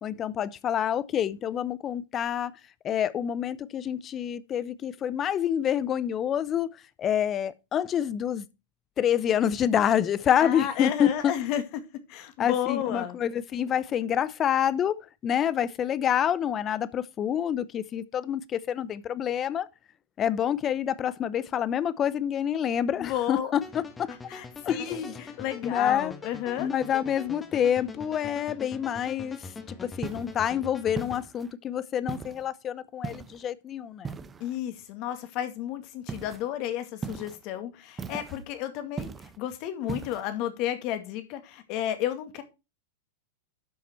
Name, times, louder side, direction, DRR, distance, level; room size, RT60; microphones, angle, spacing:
voice 1, 0.0-2.5 2.8-6.7 7.0-8.5 9.0-11.3 12.4-19.7 20.2-24.1 24.6-25.0 25.6-26.1 26.6-34.2, left 9 dB, 30° left, 0.8 m, -27 dB
voice 2, 10.4-11.6 12.1-13.2 23.0-23.5 24.3-26.7 34.4-39.1 39.4-42.4, left 11 dB, 50° left, 2.1 m, -32 dB
sound 1, 23.6-31.2, left 4 dB, 15° left, 1.7 m, -43 dB
sound 2, 30.0-30.4 31.0-31.5 32.1-32.5 33.0-33.5 34.0-34.6 36.1-36.4 37.0-37.4 38.0-38.4 39.0-39.4 39.9-40.2, right 5 dB, 20° right, 0.9 m, -37 dB
12.0 x 5.8 x 4.4 m
hypercardioid pair, 100°, 0 cm